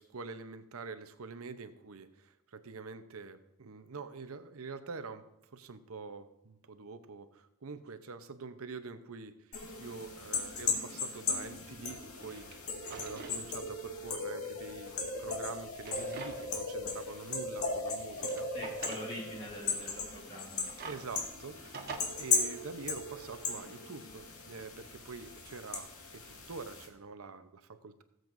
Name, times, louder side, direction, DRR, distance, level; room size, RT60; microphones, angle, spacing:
voice 1, 0.0-5.3 5.5-9.5 9.8-12.6 12.9-14.9 15.2-18.5 20.8-21.8 22.2-26.2 26.5-28.0, right 4 dB, 70° right, 10 dB, 0.8 m, -45 dB
sound 1, 9.5-26.9, left 4 dB, 80° left, 2.0 m, -37 dB
Drawer open or close, 12.0-13.4 13.8-13.9 14.9-16.6 17.0-17.1 17.9-19.1 20.3-22.0, right 4 dB, 45° right, 1.3 m, -47 dB
voice 2, 18.5-20.7, equal, 30° left, -7 dB, 2.4 m, -44 dB
18.5 x 7.8 x 2.6 m, 0.86 s
head